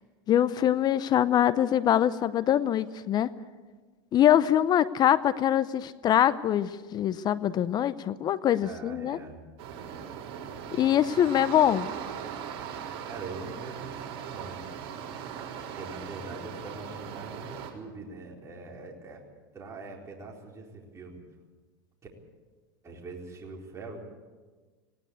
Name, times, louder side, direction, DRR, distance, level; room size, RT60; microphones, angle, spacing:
voice 1, 0.3-3.3 4.1-9.2 10.7-11.9, left 11 dB, 35° left, 17 dB, 0.7 m, -24 dB
voice 2, 8.6-9.4 9.7-10.0 13.0-14.6 15.7-19.3 19.5-21.2 22.8-24.0, right 3 dB, 25° right, -1 dB, 4.2 m, -43 dB
sound 1, 9.6-17.7, right 8 dB, 55° right, 4.0 m, -39 dB
19.0 x 18.0 x 8.4 m, 1.4 s
supercardioid pair, 115°, 12 cm